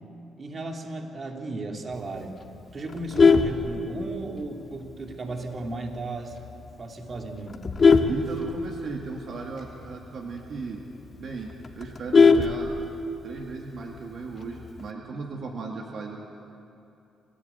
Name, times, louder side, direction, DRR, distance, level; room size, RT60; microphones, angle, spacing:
voice 1, 0.4-2.4 2.7-6.4 6.8-7.7, right 2 dB, 40° right, 2 dB, 2.8 m, -35 dB
Vehicle horn car horn honking, 2.9-4.4 4.9-5.1 5.4-5.5 5.9-6.0 6.3-6.7 7.2-9.1 9.4-9.5 9.8-9.9 10.3-10.4 10.8-10.9 11.1-13.2 14.4-14.8, left 4 dB, 40° left, 1.6 m, -20 dB
voice 2, 8.1-10.8 11.2-12.7 13.2-16.2, right 4 dB, 60° right, 0 dB, 2.2 m, -36 dB
27.0 x 15.0 x 8.2 m, 2.7 s
cardioid pair, 90°, 0 cm